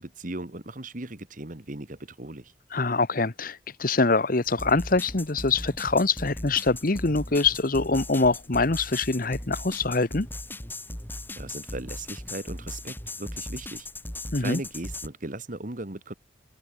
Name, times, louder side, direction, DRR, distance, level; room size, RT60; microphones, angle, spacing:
voice 1, 0.0-2.5 11.3-13.9 14.4-16.1, right 2 dB, 45° right, 1.8 m, -37 dB
voice 2, 2.7-10.3 14.3-14.6, left 3 dB, 50° left, 1.2 m, -24 dB
sound 1, 4.4-15.1, left 1 dB, 10° left, 5.4 m, -38 dB
open air
head